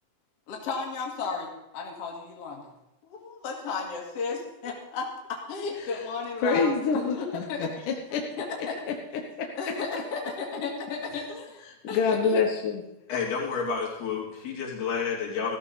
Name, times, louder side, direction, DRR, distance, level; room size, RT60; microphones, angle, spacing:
voice 1, 0.5-2.6 3.0-7.8 8.4-8.9 9.6-12.4, left 4 dB, 45° left, -1 dB, 2.9 m, -34 dB
voice 2, 6.4-8.2 8.6-9.5 11.7-12.8, left 5 dB, 65° left, 1 dB, 2.5 m, -27 dB
voice 3, 13.1-15.6, left 6 dB, 85° left, -4 dB, 4.8 m, -30 dB
15.0 x 13.5 x 4.1 m, 0.91 s
omnidirectional pair, 4.3 m